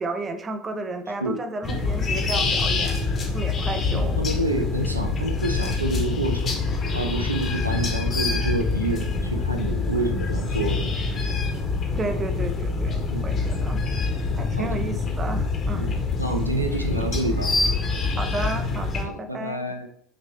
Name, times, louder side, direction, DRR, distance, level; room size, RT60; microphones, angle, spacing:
voice 1, 0.0-3.0 3.3-4.2 12.0-13.8 14.4-15.9 18.2-19.7, right 2 dB, 25° right, 7 dB, 0.6 m, -32 dB
sound 1, 1.6-19.0, left 4 dB, 30° left, 0.9 m, -25 dB
voice 2, 3.9-6.5 6.9-10.9 13.1-13.4 14.6-14.9 15.8-17.6 19.0-19.9, right 2 dB, 90° right, 5 dB, 0.4 m, -28 dB
5.8 x 2.7 x 3.1 m, 0.68 s
figure-of-eight pair, 65°, 0 cm